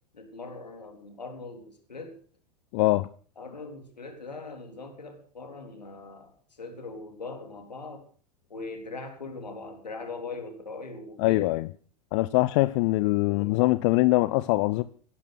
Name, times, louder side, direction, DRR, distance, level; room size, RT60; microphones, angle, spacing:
voice 1, 0.1-2.2 3.4-8.1 8.5-11.5 13.3-13.6, left 3 dB, 80° left, 3.9 m, -41 dB
voice 2, 2.7-3.1 11.2-11.7 12.1-14.8, left 20 dB, 45° left, 0.7 m, -23 dB
17.5 x 11.5 x 6.4 m
figure-of-eight pair, 85°, 21 cm